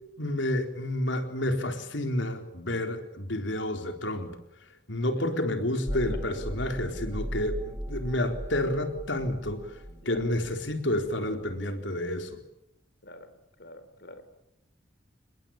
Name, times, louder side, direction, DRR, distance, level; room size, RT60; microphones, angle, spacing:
voice 1, 0.2-4.4 4.9-12.4, left 1 dB, 85° left, 6 dB, 4.1 m, -30 dB
voice 2, 5.9-6.3 9.8-10.2 13.0-13.3 13.6-14.2, left 1 dB, 60° left, 11 dB, 4.5 m, -46 dB
sound 1, 5.9-11.3, equal, 15° right, 1.7 m, -37 dB
28.5 x 21.5 x 8.9 m, 0.84 s
head